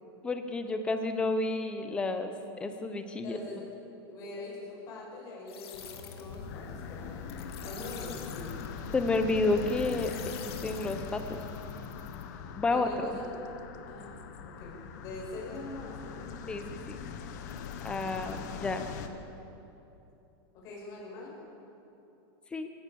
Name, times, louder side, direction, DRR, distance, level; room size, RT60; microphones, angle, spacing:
voice 1, 0.2-3.4 8.9-10.1 10.4-11.4 12.6-13.1 16.5-17.0 17.8-18.9 22.5-22.7, left 2 dB, 10° left, 7 dB, 0.8 m, -30 dB
voice 2, 3.2-3.7 4.1-7.2 7.5-8.6 12.7-13.3 13.8-14.2 14.4-16.4 20.5-21.3, left 2 dB, 25° left, -3 dB, 5.3 m, -43 dB
sound 1, 5.5-11.8, left 6 dB, 80° left, 2.4 m, -47 dB
sound 2, 6.3-19.1, left 7 dB, 45° left, 1.3 m, -41 dB
25.5 x 15.0 x 7.0 m, 2.9 s
supercardioid pair, 180°, 13 cm